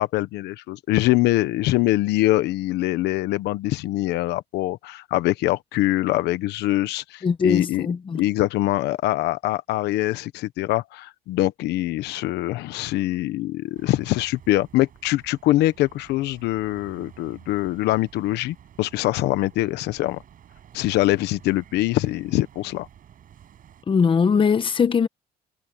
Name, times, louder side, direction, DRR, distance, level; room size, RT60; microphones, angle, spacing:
voice 1, 0.0-7.9 8.1-20.2 20.7-22.9, left 16 dB, 85° left, 1.1 m, -23 dB
voice 2, 7.2-8.2 23.9-25.1, left 6 dB, 30° left, 1.0 m, -20 dB
sound 1, 13.8-23.8, right 9 dB, 55° right, 6.9 m, -50 dB
cardioid pair, 110°, 17 cm